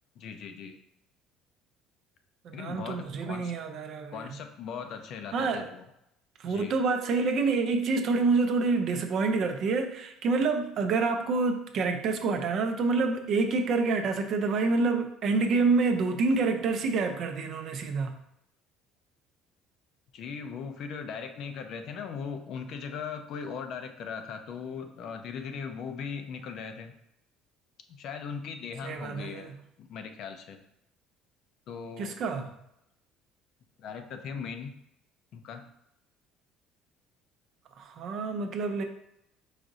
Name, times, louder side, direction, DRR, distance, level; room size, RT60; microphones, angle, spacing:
voice 1, 0.2-0.8 2.5-3.5 4.1-5.8 6.4-6.8 20.1-26.9 27.9-30.6 31.7-32.5 33.8-34.7 35.3-35.6, left 6 dB, 50° left, 7 dB, 0.5 m, -39 dB
voice 2, 2.4-4.3 5.3-5.7 6.4-18.1 28.8-29.5 32.0-32.5 37.8-38.8, right 4 dB, 45° right, 6 dB, 0.4 m, -27 dB
4.8 x 2.6 x 3.9 m, 0.80 s
cardioid pair, 165°, 0 cm